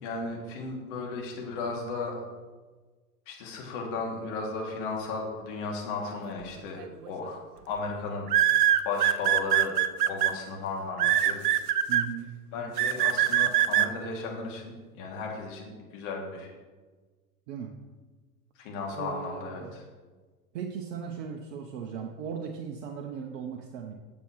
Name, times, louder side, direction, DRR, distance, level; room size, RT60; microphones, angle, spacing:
voice 1, 0.0-2.3 3.3-8.5 8.8-9.8 10.1-11.4 12.5-16.5 18.6-19.9, left 3 dB, 50° left, -1 dB, 2.6 m, -35 dB
sound 1, 6.8-7.1 8.3-10.3 11.0-12.0 12.8-13.9, right 11 dB, 75° right, 0.7 m, -22 dB
voice 2, 11.9-12.3 17.5-17.7 18.9-19.8 20.5-23.9, right 7 dB, 50° right, 3 dB, 1.0 m, -37 dB
12.5 x 7.4 x 3.2 m, 1.4 s
figure-of-eight pair, 95°, 47 cm